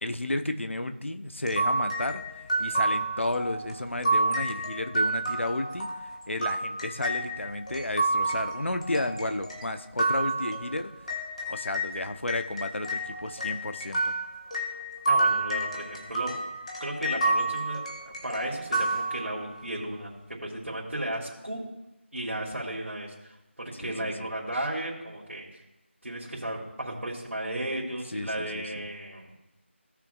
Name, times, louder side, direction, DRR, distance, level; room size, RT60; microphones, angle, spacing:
voice 1, 0.0-5.9 6.3-10.9 11.5-14.1 23.8-24.1 28.1-28.8, left 1 dB, 70° left, 7 dB, 1.0 m, -32 dB
sound 1, 1.5-11.9 12.3-19.6, right 2 dB, 30° left, 1.3 m, -30 dB
voice 2, 15.1-16.3 16.8-20.1 20.4-21.7 22.1-25.6 26.0-29.3, right 1 dB, 90° right, -5 dB, 2.9 m, -34 dB
17.0 x 6.1 x 2.4 m, 0.96 s
figure-of-eight pair, 170°, 7 cm